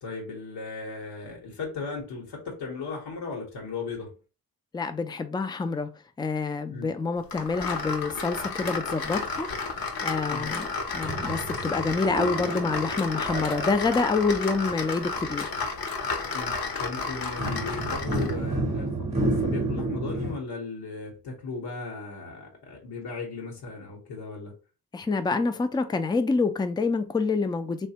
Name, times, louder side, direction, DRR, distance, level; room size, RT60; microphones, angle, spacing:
voice 1, 0.0-4.1 6.7-6.9 10.3-10.6 16.3-24.6, left 4 dB, 80° left, 1.0 m, -36 dB
voice 2, 4.7-5.9 6.2-9.5 9.7-10.7 10.9-15.5 24.9-27.9, left 4 dB, 10° left, 0.3 m, -27 dB
sound 1, 7.3-18.4, left 4 dB, 60° left, 0.8 m, -32 dB
sound 2, 11.0-14.7 17.4-20.3, right 2 dB, 15° right, 0.8 m, -31 dB
3.1 x 2.2 x 2.8 m
cardioid pair, 65°, 40 cm